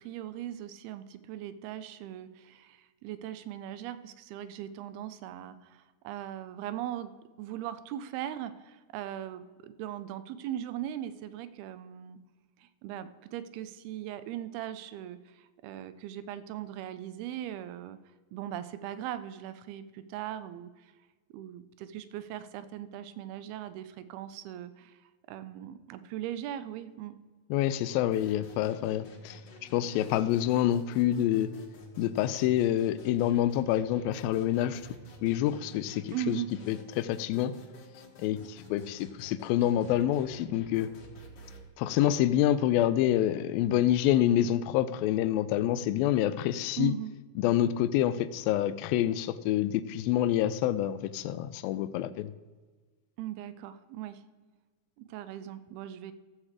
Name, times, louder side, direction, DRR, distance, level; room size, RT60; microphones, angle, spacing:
voice 1, 0.0-7.1 7.4-12.2 12.6-18.0 18.3-20.9 21.3-25.0 25.3-27.2 36.1-36.5 46.8-47.1 53.2-54.2 55.0-56.1, right 11 dB, 90° right, 12 dB, 2.6 m, -39 dB
voice 2, 27.5-31.5 32.0-34.8 35.2-36.4 36.7-37.5 38.2-40.9 41.8-46.9 47.4-52.3, left 12 dB, 80° left, 12 dB, 2.2 m, -27 dB
sound 1, 28.1-41.7, left 1 dB, 55° left, 1.3 m, -50 dB
14.5 x 7.3 x 4.9 m, 1.4 s
omnidirectional pair, 4.5 m